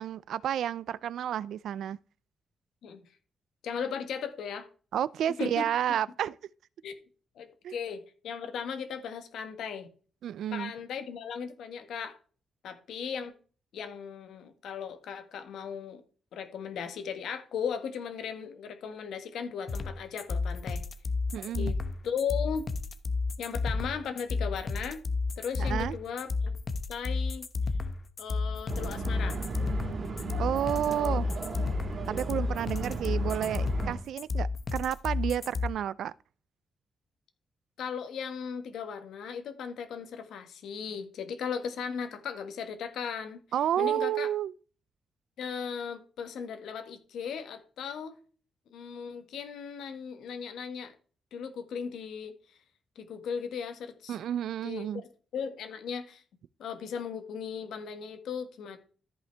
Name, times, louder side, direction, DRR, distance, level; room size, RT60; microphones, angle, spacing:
voice 1, 0.0-2.0 4.9-6.4 7.6-7.7 10.2-10.7 21.3-21.7 25.6-26.0 30.4-31.3 32.1-36.1 43.5-44.5 54.1-55.0, right 10 dB, 75° right, 0.3 m, -31 dB
voice 2, 3.6-4.7 5.4-5.7 6.8-6.9 7.3-9.9 10.5-12.2 12.6-13.3 13.7-16.0 16.3-20.8 21.6-21.8 22.0-22.6 23.4-25.0 25.4-26.5 26.9-27.5 28.2-29.4 31.0-31.2 37.8-43.4 43.8-44.3 45.4-48.2 48.7-50.9 51.3-52.3 52.9-54.2 54.6-54.9 55.3-56.2 56.6-58.8, left 7 dB, 85° left, 1.5 m, -37 dB
sound 1, 19.7-35.7, left 3 dB, 35° left, 0.8 m, -31 dB
sound 2, 28.7-34.0, right 3 dB, 45° right, 2.5 m, -36 dB
13.5 x 5.7 x 3.3 m
cardioid pair, 145°, 0 cm